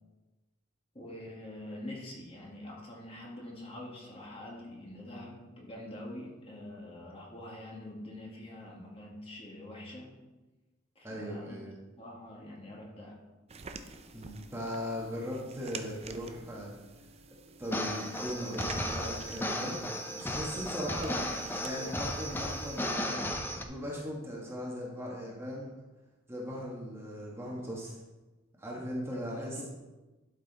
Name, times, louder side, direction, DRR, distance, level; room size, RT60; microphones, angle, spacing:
voice 1, 0.9-10.1 11.0-11.6 12.0-13.2 29.1-29.6, left 1 dB, 30° left, -3 dB, 1.9 m, -45 dB
voice 2, 11.0-11.7 14.1-16.7 17.6-19.8 20.1-25.7 26.3-28.0 28.6-29.6, equal, 15° right, -4 dB, 1.4 m, -39 dB
sound 1, 13.5-23.0, right 4 dB, 35° right, 0.6 m, -49 dB
sound 2, 17.6-23.6, left 1 dB, 10° left, 0.6 m, -35 dB
12.0 x 5.4 x 4.0 m, 1.1 s
head